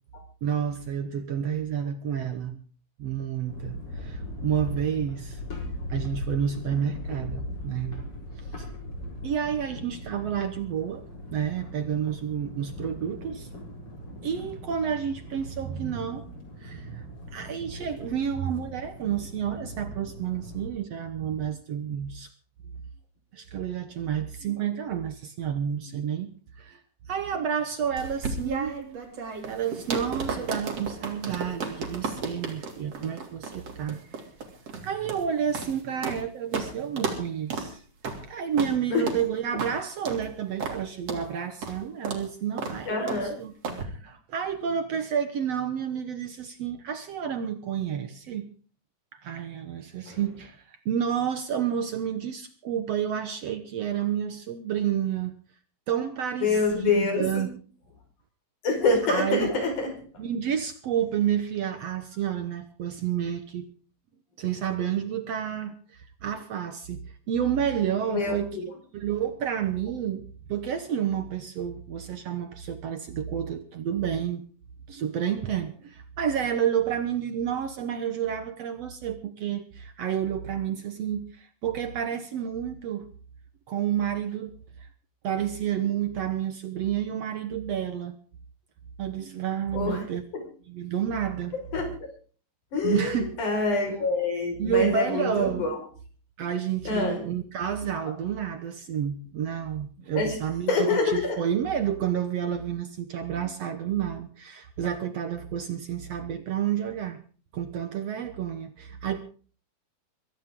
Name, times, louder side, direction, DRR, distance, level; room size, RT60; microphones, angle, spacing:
voice 1, 0.4-2.6 3.0-5.4 5.9-8.0 8.4-8.7 9.2-11.0 11.3-13.5 14.2-16.3 16.6-22.3 23.3-26.3 26.6-26.8 27.1-28.7 29.5-34.0 34.8-37.8 38.3-43.5 43.8-48.5 49.2-55.3 55.9-57.5 59.1-59.5 60.2-63.7 64.4-68.6 68.9-74.4 74.9-83.1 83.7-84.9 85.2-88.2 89.0-90.2 90.7-91.6 92.8-93.6 93.9-94.1 94.6-95.7 96.4-107.2 107.5-109.2, right 8 dB, 65° right, 1.6 m, -30 dB
sound 1, 3.5-20.7, left 1 dB, 40° left, 5.6 m, -39 dB
sound 2, 28.0-36.2 36.5-36.7 37.0-37.2 37.5-37.7 38.0-38.2 38.6-38.7 39.1-39.2 39.6-39.7 40.1-40.2 40.6-40.8 41.1-41.2 41.6-41.8 42.1-42.2 42.6-42.8 43.1-43.2 43.6-43.8, right 4 dB, 45° right, 3.9 m, -33 dB
voice 2, 42.9-43.3 50.0-50.2 56.4-57.4 58.6-59.9 68.1-68.6 89.7-90.0 91.7-91.9 92.7-95.8 96.8-97.2 100.1-100.4 100.7-101.4, left 3 dB, 55° left, 6.5 m, -26 dB
23.0 x 14.5 x 3.7 m
omnidirectional pair, 4.2 m